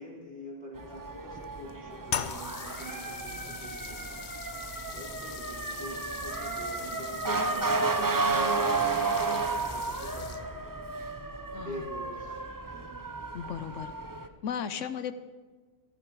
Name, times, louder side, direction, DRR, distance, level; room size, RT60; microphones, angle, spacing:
voice 1, 0.0-4.2 4.9-8.3 8.6-11.0 11.6-12.4 12.7-13.0 14.7-15.0, left 1 dB, 50° right, -4 dB, 4.0 m, -46 dB
Motor vehicle (road) / Siren, 0.8-14.3, right 3 dB, 25° right, 0.5 m, -32 dB
sound 1, 2.1-10.7, left 8 dB, 55° left, 0.5 m, -41 dB
voice 2, 13.3-13.9 14.4-15.1, left 8 dB, 75° left, 12 dB, 1.0 m, -35 dB
14.5 x 14.0 x 4.7 m, 1.4 s
omnidirectional pair, 1.3 m